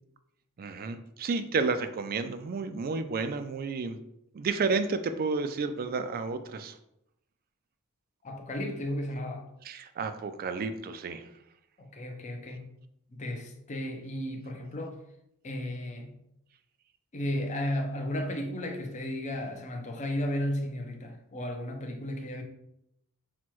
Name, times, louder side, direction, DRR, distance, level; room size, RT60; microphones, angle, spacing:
voice 1, 0.6-4.0 4.3-6.8 9.6-11.2, right 4 dB, 40° right, 0.3 m, -31 dB
voice 2, 8.2-9.5 11.8-12.7 13.1-15.0 15.4-16.1 17.1-22.4, left 1 dB, 35° left, 0.6 m, -34 dB
6.0 x 2.2 x 3.0 m
head